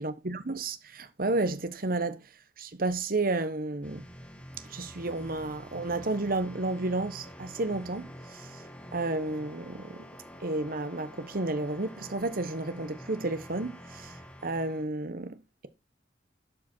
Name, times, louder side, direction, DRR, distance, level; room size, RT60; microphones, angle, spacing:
voice 1, 0.0-2.2 2.6-4.0 4.7-8.6 8.9-10.0 10.4-14.2 14.4-15.4, right 2 dB, 55° right, 1.1 m, -31 dB
sound 1, 3.8-14.8, equal, 5° left, 1.4 m, -47 dB
11.5 x 5.2 x 4.5 m
head